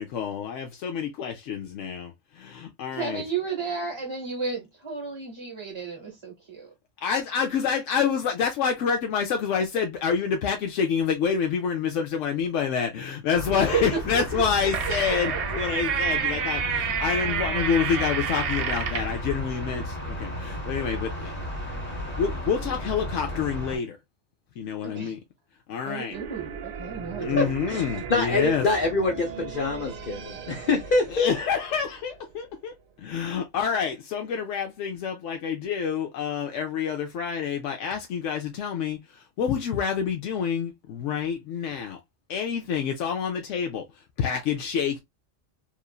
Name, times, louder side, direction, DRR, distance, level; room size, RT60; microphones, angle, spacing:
voice 1, 0.0-3.2 7.0-21.3 22.2-24.0 24.6-25.2 25.7-26.2 27.2-28.7 31.1-42.0 42.3-43.8 44.2-45.0, left 7 dB, 85° left, 0.9 m, -28 dB
voice 2, 2.9-6.7 13.5-14.5 18.9-19.0 24.8-25.1 25.8-27.5 27.9-28.1, right 5 dB, 30° right, 0.7 m, -32 dB
sound 1, 13.3-23.8, equal, 10° left, 0.9 m, -34 dB
sound 2, 14.3-19.2, right 7 dB, 60° right, 0.7 m, -28 dB
sound 3, 26.1-32.9, right 8 dB, 80° right, 0.3 m, -39 dB
voice 3, 27.4-27.8 28.1-31.3, left 3 dB, 50° left, 0.7 m, -25 dB
3.1 x 2.4 x 2.2 m
omnidirectional pair, 1.2 m